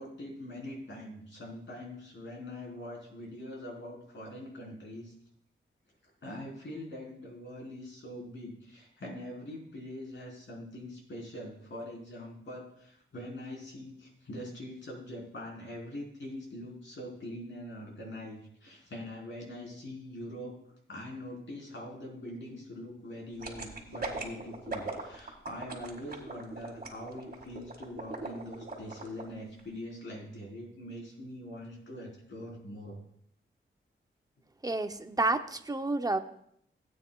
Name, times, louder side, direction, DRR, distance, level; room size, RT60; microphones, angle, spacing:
voice 1, 0.0-5.1 6.0-20.5 20.9-33.0, left 1 dB, 60° left, -1 dB, 3.8 m, -43 dB
sound 1, 23.4-29.2 29.6-29.7, right 3 dB, 45° right, 2.0 m, -39 dB
voice 2, 34.6-36.2, right 2 dB, 20° right, 8 dB, 0.6 m, -30 dB
17.0 x 8.8 x 2.3 m, 0.70 s
wide cardioid pair, 100°, 21 cm